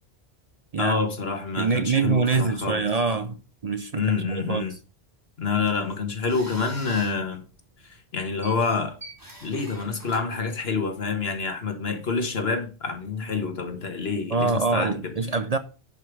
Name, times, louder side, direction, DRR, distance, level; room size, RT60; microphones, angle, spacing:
voice 1, 0.8-2.8 4.0-4.7 5.4-7.4 7.8-9.0 9.4-15.1, left 4 dB, 70° left, 1.7 m, -27 dB
voice 2, 1.6-4.7 14.3-15.6, right 4 dB, 45° right, 0.6 m, -25 dB
sound 1, 5.4-11.1, right 1 dB, 20° right, 2.9 m, -46 dB
10.5 x 5.2 x 4.7 m
omnidirectional pair, 1.1 m